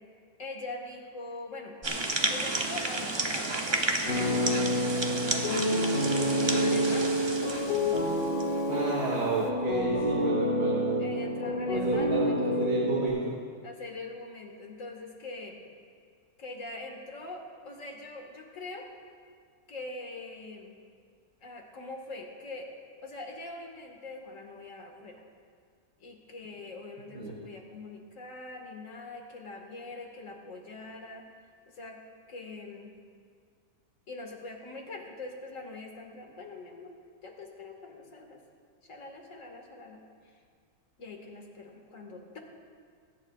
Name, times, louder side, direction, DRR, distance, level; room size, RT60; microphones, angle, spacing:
voice 1, 0.4-1.8 2.3-3.6 3.8-5.9 6.4-7.1 11.0-12.4 13.6-15.6 16.4-18.9 19.7-20.7 21.4-22.7 23.0-25.2 26.0-31.2 31.7-32.0 32.3-33.0 34.1-36.9 37.2-38.4 38.8-40.4 41.0-42.4, left 2 dB, 55° left, 1 dB, 2.0 m, -43 dB
sound 1, 1.8-8.6, right 2 dB, 25° right, 0.6 m, -32 dB
sound 2, 4.1-13.1, equal, 70° left, 2.8 m, -28 dB
voice 2, 8.7-11.0 11.7-13.3 27.1-27.3, right 3 dB, 90° right, -3 dB, 1.9 m, -31 dB
22.0 x 11.0 x 2.4 m, 2.1 s
omnidirectional pair, 1.6 m